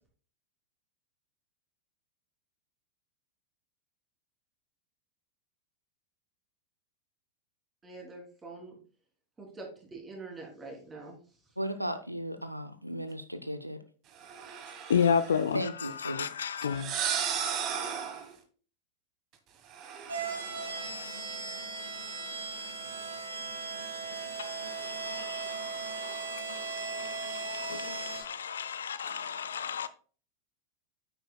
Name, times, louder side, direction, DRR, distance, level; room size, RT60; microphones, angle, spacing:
voice 1, 7.8-8.8 9.4-11.6, right 3 dB, 15° right, 3.2 m, -45 dB
voice 2, 11.6-13.8 15.5-16.3, equal, 90° right, 0.6 m, -35 dB
sound 1, 14.2-15.5 16.6-18.3 19.7-21.0, right 8 dB, 35° right, 1.4 m, -35 dB
voice 3, 14.9-16.9 24.1-29.9, left 7 dB, 65° left, 0.5 m, -33 dB
sound 2, 20.1-28.2, right 4 dB, 70° right, 2.4 m, -37 dB
9.1 x 8.8 x 2.3 m
figure-of-eight pair, 90°, 0 cm